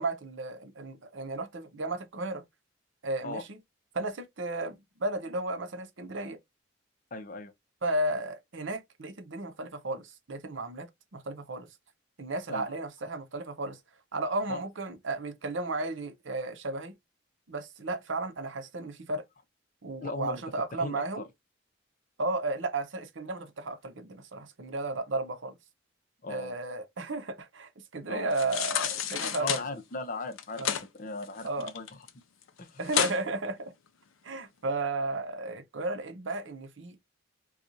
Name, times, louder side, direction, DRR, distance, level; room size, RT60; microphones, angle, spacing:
voice 1, 0.0-2.4 3.0-3.6 3.9-6.4 7.8-11.7 12.2-13.8 14.1-16.9 17.5-19.2 19.8-21.2 22.2-25.5 26.3-29.6 30.6-30.7 31.4-31.7 32.8-33.7 34.2-37.0, right 2 dB, 70° right, 0.7 m, -34 dB
voice 2, 7.1-7.5 12.5-12.8 14.5-14.6 20.0-20.4 20.8-21.3 26.2-26.6 28.1-28.6 29.4-30.6 30.9-32.0 32.6-32.8, left 3 dB, 40° left, 0.6 m, -38 dB
sound 1, 28.3-29.6 30.3-30.8 31.2-32.1 32.4-32.5 32.9-33.2 33.7-33.8, left 9 dB, 80° left, 0.5 m, -30 dB
4.2 x 2.3 x 2.6 m
head